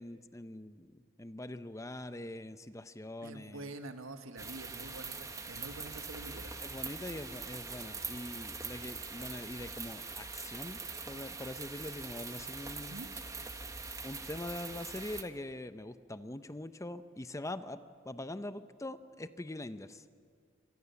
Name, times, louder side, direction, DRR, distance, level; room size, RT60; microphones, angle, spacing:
voice 1, 0.0-3.7 6.6-10.8 11.1-13.0 14.0-17.8 18.0-20.0, left 1 dB, 15° left, 12 dB, 0.7 m, -43 dB
voice 2, 3.2-6.6 7.8-7.9 12.9-13.1, right 2 dB, 80° right, 7 dB, 1.8 m, -46 dB
sound 1, 4.4-15.2, right 4 dB, 15° right, 1.3 m, -43 dB
27.5 x 25.0 x 7.1 m, 2.1 s
head